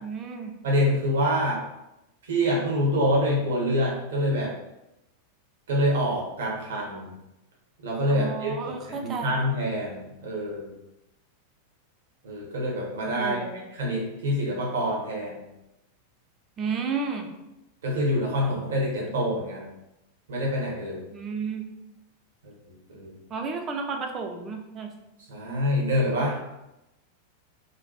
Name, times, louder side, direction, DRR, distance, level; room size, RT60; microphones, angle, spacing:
voice 1, 0.0-0.5 8.1-9.3 13.2-13.6 16.6-17.3 21.1-21.6 23.3-24.9, right 5 dB, 25° right, 4 dB, 0.4 m, -32 dB
voice 2, 0.6-1.6 2.3-4.5 5.7-7.1 7.8-10.7 12.2-13.4 13.7-15.4 17.8-19.7 20.3-21.0 22.4-22.5 22.9-23.2 25.3-26.4, equal, 60° right, -3 dB, 0.7 m, -26 dB
2.5 x 2.2 x 2.3 m, 0.91 s
figure-of-eight pair, 90°, 0 cm